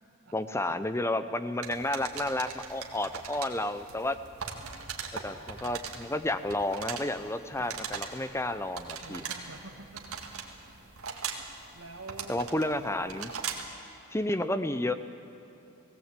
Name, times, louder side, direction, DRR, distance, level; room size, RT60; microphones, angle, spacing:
voice 1, 0.3-4.2 5.1-9.2 12.3-13.3 14.1-14.9, left 1 dB, 10° left, 11 dB, 0.6 m, -31 dB
sound 1, 1.6-13.8, right 6 dB, 80° right, 2.0 m, -41 dB
voice 2, 9.0-10.8 11.7-12.4 14.3-14.4, right 3 dB, 60° right, -1 dB, 1.5 m, -48 dB
18.5 x 17.0 x 8.3 m, 2.9 s
head